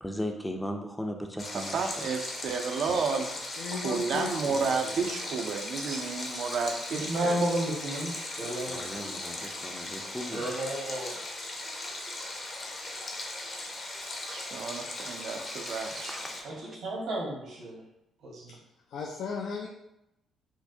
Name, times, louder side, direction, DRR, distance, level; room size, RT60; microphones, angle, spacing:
voice 1, 0.0-1.8 2.1-2.3 8.7-10.5 15.9-16.8, equal, 5° left, 3 dB, 0.4 m, -37 dB
Stream, 1.4-16.4, left 2 dB, 45° left, 0.7 m, -38 dB
voice 2, 1.5-3.3 3.7-7.4 14.3-16.2, right 5 dB, 65° right, 6 dB, 0.4 m, -31 dB
voice 3, 3.6-5.2 5.5-5.7 18.5-18.6 18.9-19.7, left 5 dB, 70° left, 0 dB, 0.4 m, -37 dB
voice 4, 6.9-9.1 10.3-11.2 16.4-17.8 18.2-18.6, right 1 dB, 80° right, -3 dB, 1.2 m, -32 dB
4.5 x 2.1 x 2.7 m, 0.87 s
cardioid pair, 85°, 0 cm